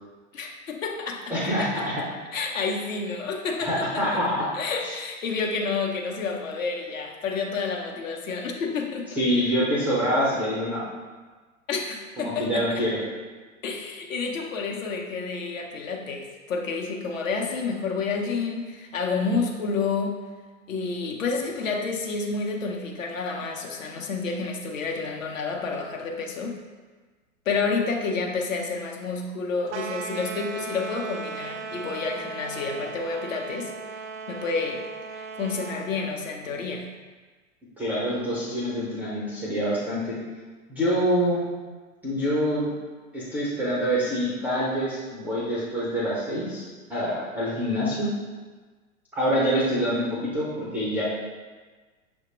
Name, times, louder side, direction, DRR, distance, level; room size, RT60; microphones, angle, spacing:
voice 1, 0.3-1.8 2.3-4.2 4.5-9.6 11.7-12.8 13.6-20.2 20.7-26.6 27.5-33.7 34.3-34.8 35.1-36.9, left 4 dB, 70° left, 1 dB, 0.7 m, -29 dB
voice 2, 1.3-1.9 3.6-4.3 4.8-4.9 9.1-10.8 12.2-13.0 37.8-40.2 40.7-41.4 42.0-42.7 43.1-46.6 46.9-48.1 49.1-51.0, equal, 5° right, -8 dB, 0.3 m, -26 dB
sound 1, 29.7-35.9, right 5 dB, 60° right, 0.5 m, -37 dB
6.0 x 2.1 x 2.9 m, 1.4 s
figure-of-eight pair, 95°, 40 cm